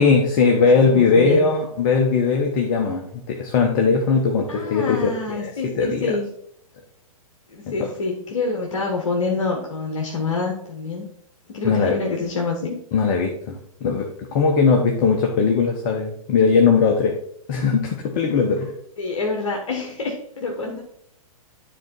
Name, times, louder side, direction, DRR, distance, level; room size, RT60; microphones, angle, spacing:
voice 1, 0.0-6.2 7.8-7.9 11.6-12.0 12.9-17.1 17.5-18.7, left 5 dB, 35° left, 1 dB, 1.0 m, -19 dB
voice 2, 0.8-1.4 4.5-6.3 7.5-11.1 11.5-12.7 19.0-20.8, left 3 dB, 55° left, 1 dB, 1.3 m, -26 dB
10.0 x 3.9 x 4.4 m, 0.70 s
figure-of-eight pair, 110°, 19 cm